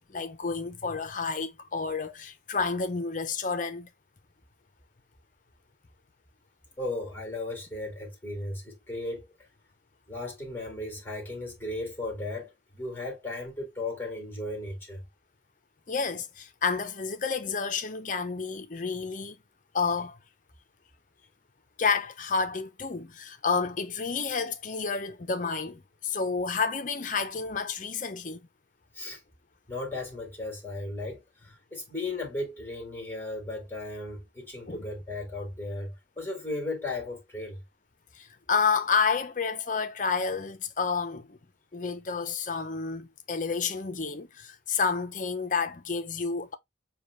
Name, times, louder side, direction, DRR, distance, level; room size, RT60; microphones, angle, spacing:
voice 1, 0.0-3.9 15.9-19.4 19.7-20.2 21.8-28.4 34.7-34.8 38.1-41.4 41.7-46.6, left 5 dB, 45° left, 0.6 m, -30 dB
voice 2, 6.8-9.5 10.1-15.0 28.9-29.2 29.7-37.6, left 2 dB, 10° left, 1.7 m, -36 dB
7.0 x 2.3 x 3.1 m
head